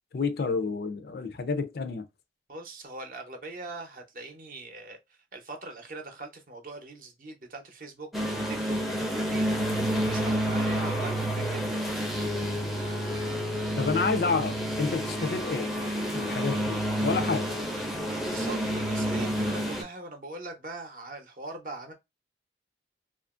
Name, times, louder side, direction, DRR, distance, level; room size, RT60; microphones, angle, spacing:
voice 1, 0.1-2.1 13.8-15.7 16.1-17.5, left 4 dB, 55° left, 0.4 m, -29 dB
voice 2, 2.5-11.8 17.9-21.9, right 2 dB, 45° right, 0.6 m, -42 dB
sound 1, 8.1-19.8, equal, ahead, 0.4 m, -29 dB
2.8 x 2.4 x 2.3 m
head